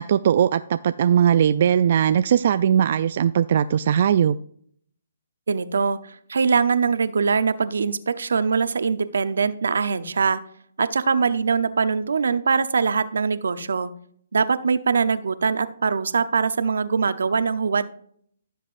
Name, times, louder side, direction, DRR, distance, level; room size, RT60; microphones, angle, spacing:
voice 1, 0.0-4.4, right 9 dB, 50° right, 12 dB, 0.3 m, -19 dB
voice 2, 5.5-10.4 10.8-13.9 14.3-17.9, right 5 dB, 80° right, 13 dB, 0.7 m, -22 dB
15.5 x 7.3 x 2.5 m, 0.62 s
hypercardioid pair, 150°, 0 cm